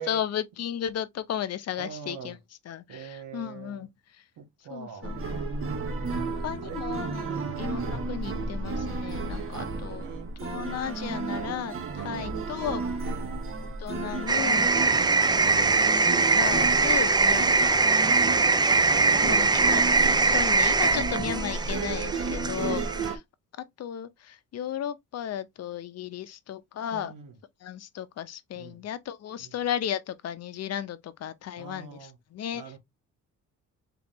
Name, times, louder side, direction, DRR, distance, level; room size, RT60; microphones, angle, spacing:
voice 1, 0.0-2.4 2.7-3.9 4.7-5.2 6.4-10.0 10.4-12.8 13.8-14.7 15.3-15.8 16.3-17.8 19.2-19.8 20.2-23.2 23.6-27.1 27.6-32.7, left 10 dB, 55° left, 0.7 m, -34 dB
voice 2, 1.8-2.4 2.9-3.9 4.4-6.8 7.2-7.5 9.5-10.9 13.0-13.4 14.8-15.1 17.2-17.4 18.0-18.2 18.9-19.9 22.2-22.9 26.9-27.4 28.5-28.8 29.4-29.5 31.6-32.2 32.5-32.8, right 6 dB, 85° right, 1.6 m, -44 dB
sound 1, 5.0-23.2, right 4 dB, 45° right, 1.1 m, -33 dB
sound 2, 14.3-23.1, right 4 dB, 15° right, 0.4 m, -22 dB
3.8 x 3.5 x 3.0 m
cardioid pair, 90°, 30 cm